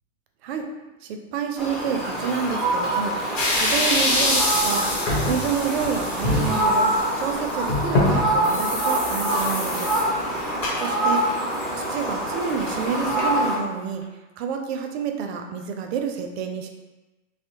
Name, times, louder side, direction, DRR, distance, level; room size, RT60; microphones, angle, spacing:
voice 1, 1.0-3.2 3.6-4.9 5.3-6.9 7.2-9.9 10.8-11.2 11.8-14.0 14.4-16.7, right 6 dB, 55° right, 5 dB, 0.4 m, -28 dB
Fowl, 1.6-13.6, right 1 dB, ahead, 0.5 m, -25 dB
sound 1, 3.4-8.3 8.8-8.9 9.3-9.5 9.7-9.9 10.6-10.7, left 2 dB, 85° left, 0.9 m, -24 dB
sound 2, 8.4-10.0 10.4-10.5 10.8-11.2 11.5-11.9 12.5-12.6 13.2-13.3 14.0-14.1, left 2 dB, 35° left, 0.9 m, -34 dB
2.6 x 2.0 x 2.8 m, 1.1 s
hypercardioid pair, 120°, 38 cm